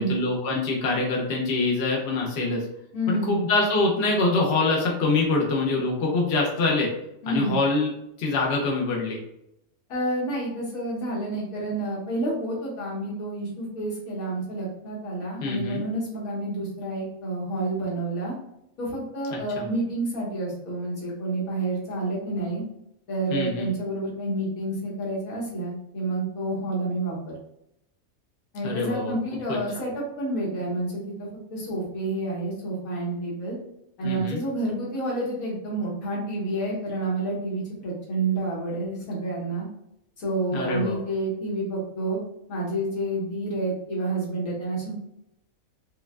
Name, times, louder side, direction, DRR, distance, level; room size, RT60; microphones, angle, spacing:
voice 1, 0.0-2.6 3.1-6.9 7.3-7.9 8.2-9.2 15.4-15.8 19.3-19.6 23.3-23.7 28.6-29.1 34.0-34.4 40.5-41.0, left 3 dB, 55° left, -1 dB, 1.0 m, -24 dB
voice 2, 2.9-3.4 7.2-7.6 9.9-18.4 18.8-22.6 23.1-27.3 28.5-33.6 34.0-39.7 40.2-42.2 42.5-44.9, right 2 dB, 90° left, -5 dB, 1.7 m, -29 dB
5.3 x 2.3 x 2.2 m, 0.80 s
omnidirectional pair, 1.4 m